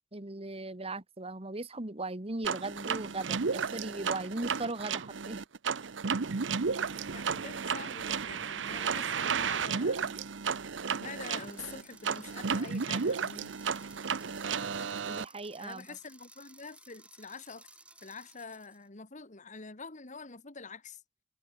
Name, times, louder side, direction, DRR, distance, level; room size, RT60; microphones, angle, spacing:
voice 1, 0.1-5.4 15.1-15.8, right 2 dB, 30° right, 1.6 m, -38 dB
sound 1, 2.4-15.3, right 6 dB, 75° right, 0.8 m, -33 dB
voice 2, 7.1-10.2 11.0-13.6 15.5-17.7 18.0-21.0, left 4 dB, 40° left, 1.7 m, -46 dB
sound 2, 11.1-18.9, right 2 dB, 5° right, 2.9 m, -57 dB
open air
head